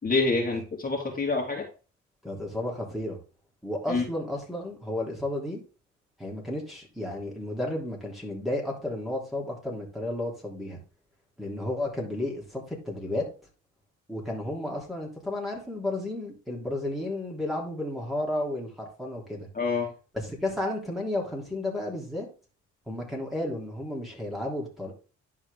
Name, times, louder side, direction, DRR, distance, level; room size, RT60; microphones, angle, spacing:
voice 1, 0.0-1.7 3.9-4.0 19.5-19.9, left 3 dB, 30° left, -1 dB, 2.7 m, -26 dB
voice 2, 2.2-3.2 3.6-5.6 6.2-10.8 11.4-13.3 14.1-19.5 20.1-22.3 22.9-24.9, left 1 dB, ahead, -3 dB, 3.3 m, -32 dB
11.0 x 4.8 x 3.7 m, 0.35 s
cardioid pair, 90°, 30 cm